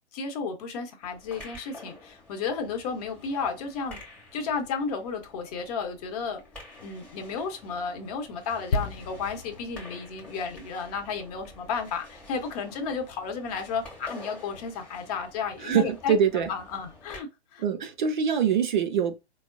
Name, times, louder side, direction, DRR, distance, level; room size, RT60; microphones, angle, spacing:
voice 1, 0.1-4.0 4.3-6.4 6.8-16.2 16.4-17.6, left 5 dB, 35° left, 0.8 m, -33 dB
sound 1, 1.0-17.2, left 2 dB, 5° left, 0.9 m, -49 dB
sound 2, 8.7-12.4 12.6-12.8, left 3 dB, 60° left, 0.5 m, -35 dB
voice 2, 15.6-16.5 17.6-19.2, right 7 dB, 45° right, 0.5 m, -24 dB
4.2 x 2.0 x 2.5 m
figure-of-eight pair, 115°, 34 cm